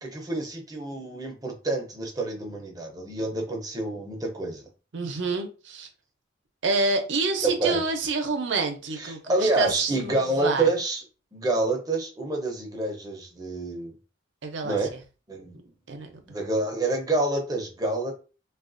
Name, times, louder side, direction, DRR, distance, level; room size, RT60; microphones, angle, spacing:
voice 1, 0.0-4.7 7.4-7.8 9.0-11.0 11.3-13.9 14.6-14.9 15.3-15.6 16.3-18.1, right 2 dB, 20° right, 0.6 m, -27 dB
voice 2, 4.9-5.9 6.6-10.7 14.4-15.0 15.9-16.1, right 3 dB, 70° right, 0.6 m, -28 dB
3.4 x 2.3 x 2.5 m
head